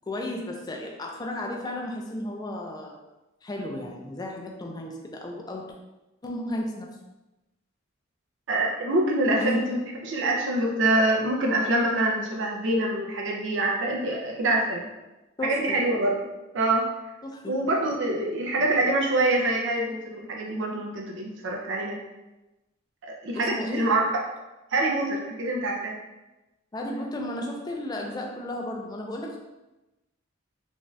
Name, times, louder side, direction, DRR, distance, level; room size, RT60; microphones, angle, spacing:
voice 1, 0.1-3.0 3.4-5.7 6.2-7.0 9.4-9.7 15.4-15.8 17.2-17.7 23.3-23.8 26.7-29.4, left 1 dB, 20° left, 1 dB, 0.3 m, -33 dB
voice 2, 8.5-14.8 15.4-16.1 16.5-16.9 17.5-22.0 23.0-24.1 24.7-26.0, right 2 dB, 65° right, -1 dB, 0.5 m, -25 dB
2.6 x 2.3 x 3.1 m, 1.0 s
head